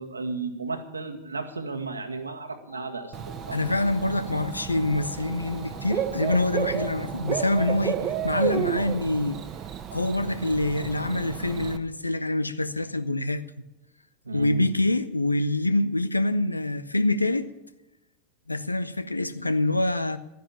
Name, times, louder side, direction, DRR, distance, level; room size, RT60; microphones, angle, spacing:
voice 1, 0.0-3.8 14.2-14.7, right 3 dB, 80° right, 1.7 m, -34 dB
sound 1, 2.7-8.0, left 4 dB, 50° left, 4.1 m, -47 dB
Bird / Cricket, 3.1-11.8, right 9 dB, 30° right, 1.1 m, -32 dB
voice 2, 3.5-9.4 9.9-13.4 14.3-17.5 18.5-20.2, left 2 dB, 85° left, 0.8 m, -25 dB
13.0 x 10.0 x 7.3 m
figure-of-eight pair, 90°, 0 cm